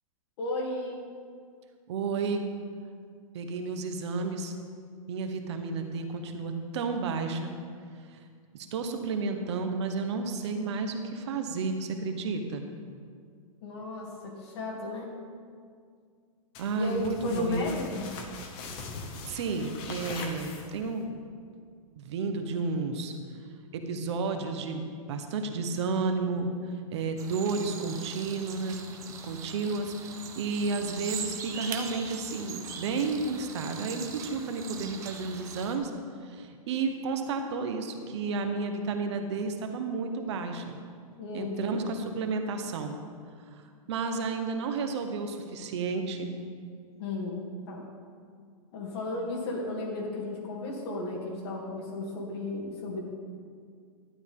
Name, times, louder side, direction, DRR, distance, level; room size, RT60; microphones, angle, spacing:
voice 1, 0.4-1.0 13.6-15.2 16.8-18.1 41.2-41.9 47.0-47.9 48.7-53.0, left 2 dB, 45° left, -3 dB, 2.7 m, -34 dB
voice 2, 1.9-2.5 3.3-4.5 5.1-7.5 8.1-8.2 8.5-12.7 16.6-17.8 19.3-21.1 22.0-23.1 23.7-28.8 29.2-35.9 36.2-40.8 41.3-43.0 43.5-46.3, right 4 dB, 50° right, 6 dB, 1.0 m, -32 dB
sound 1, 16.5-21.0, left 3 dB, 25° left, 1.0 m, -41 dB
sound 2, 27.2-35.8, right 6 dB, 15° right, 0.7 m, -41 dB
12.0 x 10.0 x 3.7 m, 2.1 s
hypercardioid pair, 165°, 19 cm